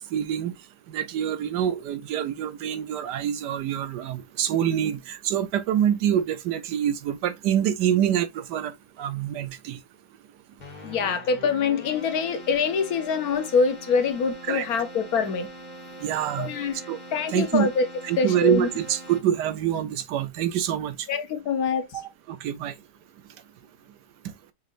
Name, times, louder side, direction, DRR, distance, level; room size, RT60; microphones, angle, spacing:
voice 1, 0.1-0.5 0.9-8.7 9.0-9.8 14.4-14.7 16.0-16.5 16.9-17.0 17.3-17.7 18.0-21.0 22.3-22.7, right 10 dB, 90° right, 1.3 m, -26 dB
Keyboard (musical), 10.6-19.6, equal, 30° left, 1.4 m, -43 dB
voice 2, 10.8-15.5 16.4-16.7 17.1-17.8 18.2-18.7 21.1-21.9, left 5 dB, 65° left, 1.2 m, -24 dB
6.4 x 3.1 x 2.5 m
omnidirectional pair, 1.8 m